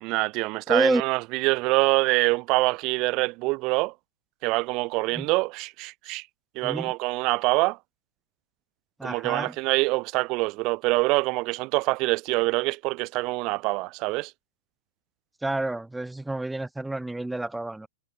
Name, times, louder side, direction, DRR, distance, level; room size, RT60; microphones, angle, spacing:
voice 1, 0.0-3.9 4.4-6.3 6.5-7.8 9.0-14.3, right 25 dB, 40° right, 1.0 m, -25 dB
voice 2, 0.7-1.0 5.1-5.3 6.6-6.9 9.0-9.5 15.4-17.9, right 2 dB, 5° right, 1.7 m, -28 dB
hypercardioid pair, 135°, 0 cm